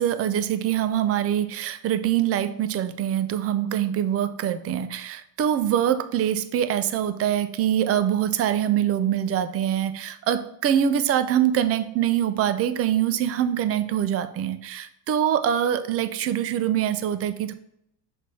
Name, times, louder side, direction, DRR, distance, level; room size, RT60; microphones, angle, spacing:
voice 1, 0.0-17.5, right 10 dB, 30° right, 11 dB, 0.4 m, -24 dB
6.9 x 3.4 x 4.1 m, 0.75 s
cardioid pair, 125°, 50 cm